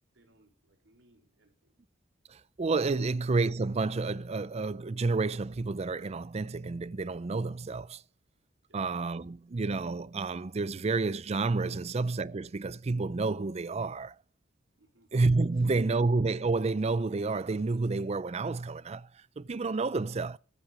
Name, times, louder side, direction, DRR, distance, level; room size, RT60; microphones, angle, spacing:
voice 1, 0.1-1.8 8.7-8.8 11.7-11.9 14.7-15.1 15.5-15.7, right 1 dB, 85° right, 3.9 m, -66 dB
voice 2, 2.3-8.0 8.7-14.1 15.1-20.4, right 3 dB, 35° right, 0.5 m, -30 dB
14.5 x 8.3 x 5.0 m
head